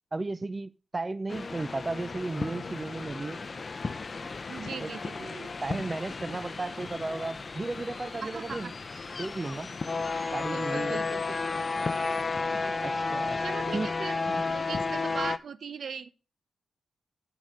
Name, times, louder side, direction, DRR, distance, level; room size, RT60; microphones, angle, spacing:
voice 1, 0.1-3.4 4.8-4.9 5.6-8.7 9.2-9.7 10.3-11.0 12.8-13.4 13.7-13.9 14.3-14.4, right 2 dB, 30° right, 0.4 m, -34 dB
sound 1, 1.3-15.4, left 4 dB, 45° left, 0.5 m, -33 dB
sound 2, 2.3-12.2, left 2 dB, 15° left, 1.5 m, -54 dB
voice 2, 4.5-5.5 8.2-9.0 10.5-11.4 12.5-13.0 13.4-14.1 14.5-16.1, right 6 dB, 65° right, 0.7 m, -39 dB
8.3 x 4.9 x 6.2 m
supercardioid pair, 50°, 0 cm